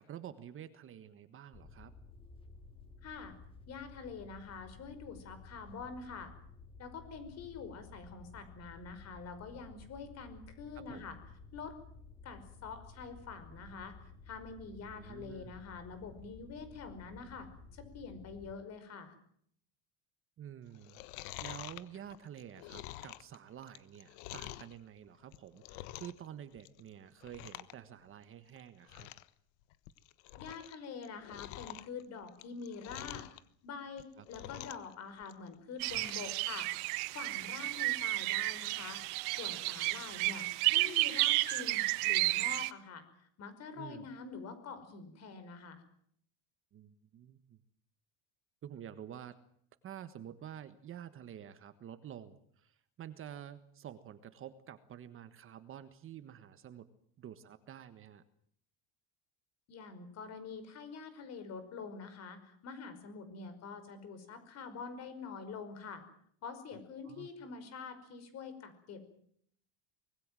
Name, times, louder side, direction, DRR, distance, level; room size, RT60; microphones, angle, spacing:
voice 1, 0.0-1.9 10.7-11.1 14.8-15.5 20.4-21.0 21.4-29.1 34.2-34.3 43.8-44.1 46.7-47.6 48.6-49.4 49.8-56.9 57.2-58.2 67.0-67.3, right 10 dB, 30° right, 11 dB, 1.5 m, -49 dB
sound 1, 1.5-18.6, left 4 dB, 15° left, 2.1 m, -54 dB
voice 2, 3.0-3.3 3.7-6.3 6.8-11.2 11.5-11.7 12.2-13.9 14.3-17.5 17.7-19.1 30.4-33.3 33.6-36.7 37.1-39.0 39.4-45.8 59.7-66.0 66.4-69.0, left 5 dB, 40° left, 11 dB, 5.3 m, -46 dB
Chewing mastication, 20.7-24.7 25.2-26.3 26.5-26.9 27.2-27.7 28.0-28.1 28.6-28.7 28.9-29.3 29.7-30.7 31.0-33.4 33.9-34.9 35.2-36.3 36.7-36.8, left 15 dB, 80° left, 1.4 m, -47 dB
sound 2, 35.8-42.7, right 22 dB, 70° right, 1.4 m, -32 dB
25.0 x 21.0 x 7.6 m, 0.65 s
cardioid pair, 160°, 40 cm